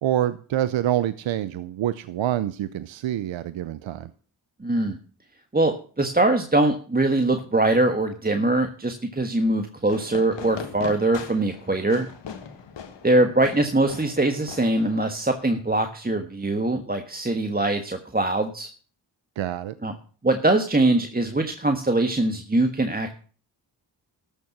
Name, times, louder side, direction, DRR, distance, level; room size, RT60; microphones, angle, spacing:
voice 1, 0.0-4.1 19.4-19.7, right 12 dB, 75° right, 14 dB, 0.7 m, -26 dB
voice 2, 4.6-5.0 5.5-12.1 13.0-18.7 19.8-19.9 20.2-23.1, right 2 dB, 20° right, 6 dB, 1.4 m, -22 dB
Fireworks, 9.8-15.4, left 6 dB, 65° left, 1.7 m, -40 dB
13.0 x 7.1 x 6.0 m, 0.42 s
supercardioid pair, 40°, 47 cm